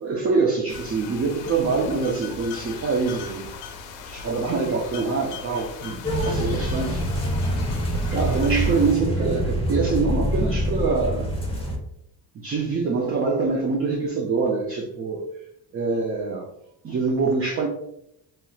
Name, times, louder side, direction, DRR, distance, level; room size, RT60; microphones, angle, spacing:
voice 1, 0.0-3.5 4.1-7.0 8.1-11.3 12.4-15.2 15.7-16.5 16.8-17.7, right 4 dB, 30° right, -1 dB, 0.6 m, -24 dB
sound 1, 0.7-9.0, left 4 dB, 80° left, 0.6 m, -39 dB
sound 2, 6.0-11.8, equal, 15° left, 0.8 m, -25 dB
3.0 x 2.9 x 2.3 m, 0.78 s
cardioid pair, 85°, 43 cm